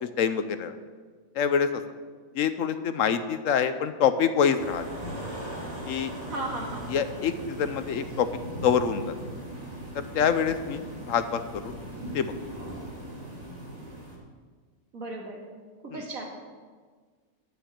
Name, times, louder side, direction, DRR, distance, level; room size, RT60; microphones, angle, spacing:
voice 1, 0.0-0.8 1.3-1.8 2.3-4.9 5.9-6.1 6.9-8.3 8.6-9.1 9.9-11.8 12.1-12.3 15.9-16.0, left 7 dB, 75° left, 11 dB, 1.1 m, -26 dB
sound 1, 4.6-14.2, right 1 dB, 30° right, 2.4 m, -39 dB
voice 2, 6.3-7.0 14.9-15.4 15.8-16.3, right 2 dB, 80° right, 0 dB, 2.3 m, -35 dB
10.0 x 7.8 x 7.2 m, 1.5 s
omnidirectional pair, 1.4 m